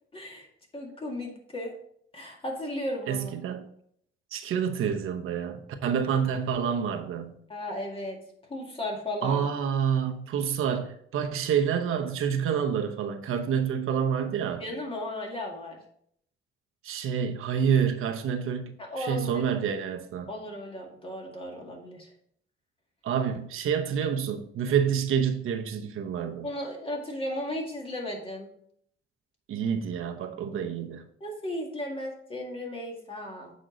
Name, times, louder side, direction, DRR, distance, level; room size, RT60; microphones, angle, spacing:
voice 1, 0.1-0.5 0.7-1.7 2.1-3.3 7.5-8.2 8.5-9.5 14.6-15.8 18.8-19.4 20.3-22.1 26.4-28.5 31.2-33.5, left 1 dB, 25° left, 2.1 m, -35 dB
voice 2, 3.1-3.7 4.3-7.3 9.2-14.6 16.8-20.3 23.0-26.5 29.5-31.1, right 7 dB, 90° right, 0.9 m, -28 dB
7.9 x 5.3 x 3.9 m
cardioid pair, 110°, 21 cm